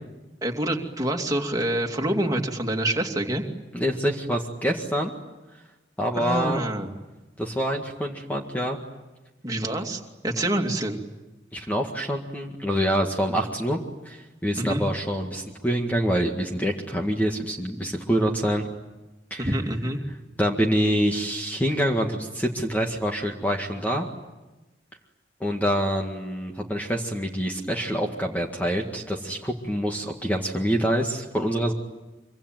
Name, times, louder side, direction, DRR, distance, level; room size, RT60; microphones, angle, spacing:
voice 1, 0.4-3.4 6.1-6.9 9.4-11.0 14.6-14.8 19.4-20.0, right 1 dB, 20° right, 1 dB, 2.7 m, -26 dB
voice 2, 3.7-5.1 6.0-6.6 7.4-8.8 11.5-13.8 14.1-18.6 19.3-19.6 20.4-24.1 25.4-31.7, equal, 10° left, 2 dB, 1.9 m, -26 dB
25.5 x 25.0 x 9.2 m, 1.1 s
head